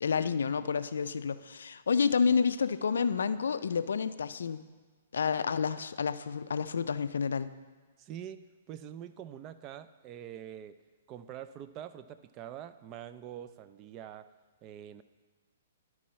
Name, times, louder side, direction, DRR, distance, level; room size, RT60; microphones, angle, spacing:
voice 1, 0.0-4.6 5.1-7.5, left 6 dB, 75° left, 13 dB, 0.3 m, -29 dB
voice 2, 8.0-10.8 11.1-14.3 14.6-15.0, right 10 dB, 30° right, 12 dB, 0.4 m, -45 dB
11.5 x 4.7 x 4.2 m, 1.4 s
hypercardioid pair, 125°, 0 cm